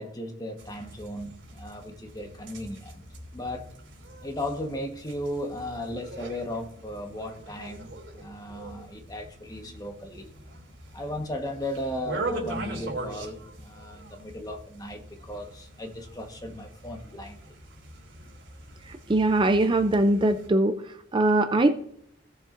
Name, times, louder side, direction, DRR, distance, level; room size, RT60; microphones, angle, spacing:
voice 1, 0.0-3.0 3.3-3.7 4.2-10.3 10.9-17.5, left 1 dB, 20° left, 3 dB, 1.3 m, -36 dB
sound 1, 0.6-20.5, right 2 dB, 90° right, 2.9 m, -42 dB
voice 2, 18.9-21.7, right 2 dB, 25° right, 9 dB, 0.4 m, -22 dB
16.5 x 7.2 x 2.6 m, 0.72 s
head